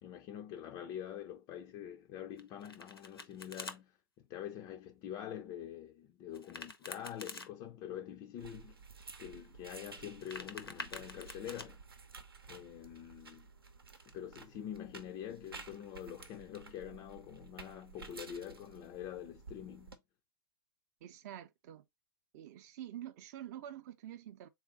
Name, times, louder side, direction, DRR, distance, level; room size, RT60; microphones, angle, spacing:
voice 1, 0.0-8.8 9.2-11.8 12.5-13.5 14.1-20.0, left 10 dB, 30° left, 0.4 m, -45 dB
Domestic sounds home sounds, 2.4-3.8 6.3-7.5 10.0-11.7, left 3 dB, 85° left, 0.7 m, -47 dB
sound 1, 8.4-20.0, right 4 dB, 80° right, 0.8 m, -53 dB
voice 2, 21.0-21.8 22.3-24.5, right 11 dB, 45° right, 0.6 m, -47 dB
3.7 x 2.5 x 3.8 m
figure-of-eight pair, 105°, 12 cm